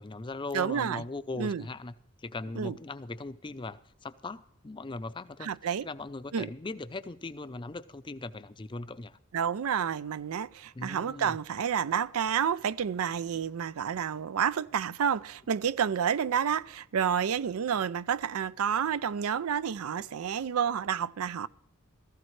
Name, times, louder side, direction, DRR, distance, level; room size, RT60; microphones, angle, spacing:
voice 1, 0.0-1.9 2.2-5.5 5.8-9.2 10.7-11.4, left 3 dB, 20° left, 0.5 m, -39 dB
voice 2, 0.5-1.0 1.3-1.6 2.6-2.7 5.4-5.9 6.3-6.5 9.3-21.5, right 8 dB, 80° right, 0.4 m, -29 dB
16.5 x 14.5 x 3.2 m
head